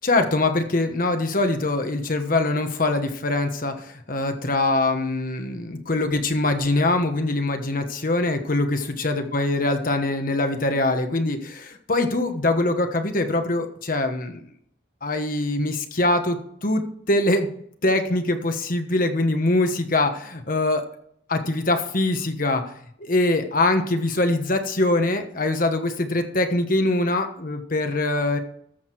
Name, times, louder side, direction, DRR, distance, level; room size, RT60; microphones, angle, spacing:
voice 1, 0.0-14.4 15.0-17.5 17.8-20.8 21.3-22.6 23.0-28.4, left 2 dB, 45° left, 6 dB, 1.3 m, -23 dB
14.0 x 6.5 x 4.7 m, 0.68 s
head